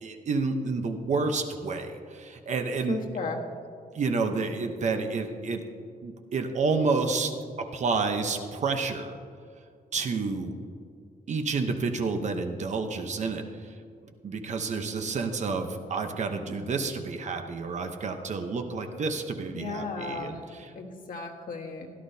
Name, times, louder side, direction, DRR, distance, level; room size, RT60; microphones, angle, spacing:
voice 1, 0.0-3.0 3.9-5.6 6.0-7.3 7.6-9.1 9.9-10.5 11.3-13.4 14.0-20.7, right 4 dB, 50° right, 6 dB, 0.8 m, -29 dB
voice 2, 2.9-3.4 19.5-20.4 20.7-21.9, left 4 dB, 60° left, 1 dB, 1.4 m, -35 dB
16.5 x 11.5 x 2.8 m, 2.3 s
wide cardioid pair, 170°, 16 cm